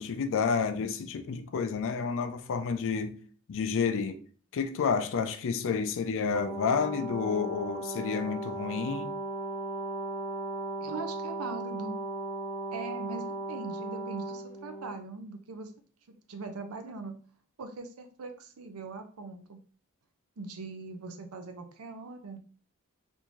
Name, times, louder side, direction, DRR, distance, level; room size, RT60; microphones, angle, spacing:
voice 1, 0.0-3.2 3.5-4.2 4.5-9.1, left 5 dB, 60° left, 0.4 m, -30 dB
Brass instrument, 6.3-15.0, right 2 dB, 20° left, 0.6 m, -37 dB
voice 2, 10.8-11.9 12.7-15.7 16.3-17.1 17.6-19.6 20.4-22.4, right 3 dB, 75° right, 0.5 m, -41 dB
3.5 x 2.6 x 3.0 m
head